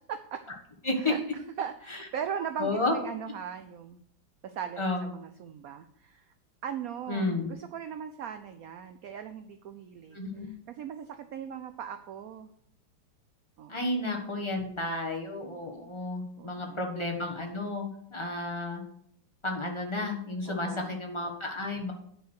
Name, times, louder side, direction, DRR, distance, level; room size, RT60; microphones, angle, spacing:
voice 1, 0.1-0.4 1.0-1.2 1.6-4.0 4.4-6.3 6.6-10.2 10.7-12.5 13.6-13.7 16.4-16.8 20.5-21.0, right 8 dB, 85° right, 9 dB, 0.7 m, -39 dB
voice 2, 2.6-3.0 4.8-5.0 7.1-7.5 10.1-10.5 13.7-18.8 19.4-21.9, left 2 dB, 20° left, 1 dB, 1.1 m, -32 dB
9.4 x 4.8 x 6.3 m, 0.70 s
omnidirectional pair, 2.1 m